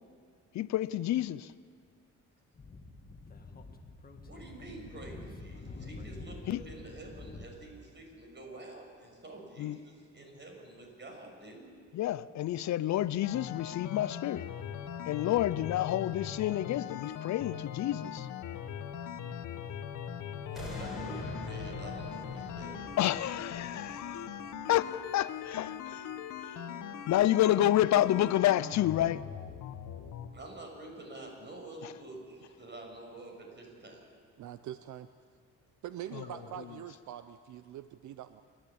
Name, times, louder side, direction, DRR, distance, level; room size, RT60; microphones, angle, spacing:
voice 1, 0.5-1.5 6.5-6.6 9.6-9.8 11.9-14.5 15.1-18.3 23.0-24.3 24.7-26.0 26.4-26.6 27.1-29.2 31.8-31.9 36.1-36.2, left 13 dB, 65° left, 0.6 m, -29 dB
Speech / Wind, 2.5-7.5, left 3 dB, 30° left, 1.8 m, -47 dB
voice 2, 4.2-11.7 20.4-23.0 30.3-34.1 36.2-36.4, right 2 dB, 35° right, 6.2 m, -48 dB
sound 1, 13.2-30.3, left 9 dB, 85° left, 1.3 m, -40 dB
sound 2, 20.5-25.6 26.1-26.2, equal, ahead, 5.1 m, -45 dB
voice 3, 34.4-35.1 35.8-38.4, right 11 dB, 75° right, 0.7 m, -43 dB
28.5 x 11.5 x 8.6 m
cardioid pair, 90°, 30 cm